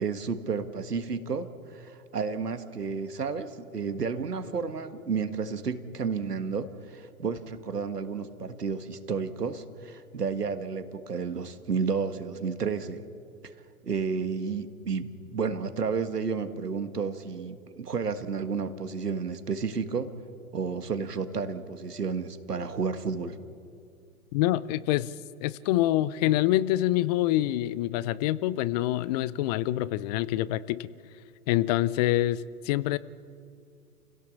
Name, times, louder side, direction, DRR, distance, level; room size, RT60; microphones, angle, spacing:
voice 1, 0.0-13.0 13.4-13.5 13.8-20.1 20.5-23.4, right 5 dB, 90° right, 9 dB, 1.7 m, -31 dB
voice 2, 24.3-25.1 25.4-30.9 31.5-33.0, left 15 dB, 30° left, 19 dB, 0.5 m, -26 dB
29.0 x 16.5 x 7.2 m, 2.4 s
hypercardioid pair, 115°, 46 cm